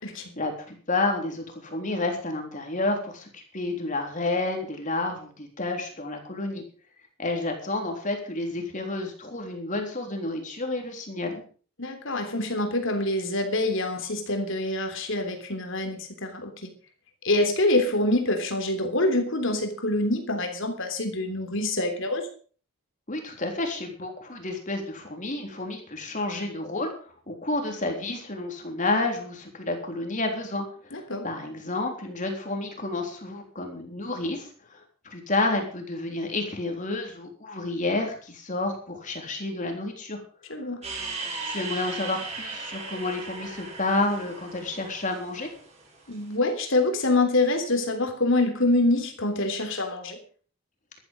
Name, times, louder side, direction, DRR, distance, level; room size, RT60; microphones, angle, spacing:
voice 1, 0.4-6.6 7.2-11.4 23.1-26.9 27.3-40.2 40.5-40.6 41.4-45.5, left 2 dB, 35° left, 3 dB, 3.6 m, -30 dB
voice 2, 11.8-16.7 17.2-22.3 30.9-31.3 40.5-40.8 46.1-50.2, left 2 dB, 60° left, 6 dB, 3.4 m, -26 dB
sound 1, 40.8-46.2, right 3 dB, 30° right, 5.3 m, -37 dB
13.0 x 13.0 x 5.3 m, 0.42 s
head